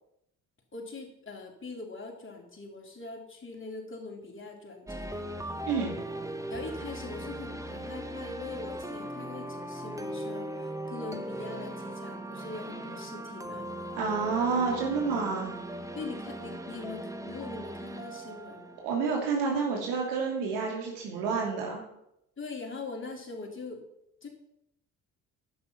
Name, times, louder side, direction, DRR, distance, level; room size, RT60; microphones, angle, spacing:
voice 1, 0.7-5.3 6.5-13.7 16.0-18.7 22.4-23.8 24.2-24.3, left 3 dB, 30° left, 0 dB, 3.7 m, -42 dB
sound 1, 4.9-19.7, right 1 dB, 5° right, 1.5 m, -39 dB
voice 2, 14.0-15.5 18.8-21.8, right 5 dB, 70° right, 0 dB, 2.9 m, -29 dB
11.0 x 8.6 x 5.6 m, 0.81 s
figure-of-eight pair, 45°, 42 cm